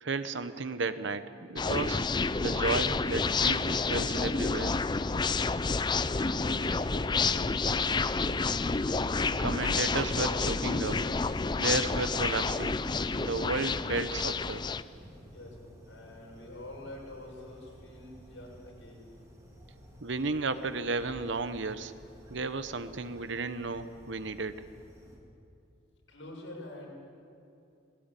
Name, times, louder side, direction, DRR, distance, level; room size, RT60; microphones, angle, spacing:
voice 1, 0.0-2.1 2.4-4.8 9.4-11.0 11.6-12.8 13.2-14.6 20.0-21.9 22.3-24.6, right 3 dB, 65° right, 12 dB, 0.9 m, -33 dB
sound 1, 1.6-14.8, left 4 dB, 20° left, 0.4 m, -29 dB
voice 2, 6.2-8.5 15.3-15.6 15.9-19.0 26.1-27.0, left 1 dB, 70° left, -2 dB, 6.6 m, -47 dB
sound 2, 6.5-25.2, equal, 15° right, 3.4 m, -54 dB
19.0 x 18.5 x 9.1 m, 2.6 s
head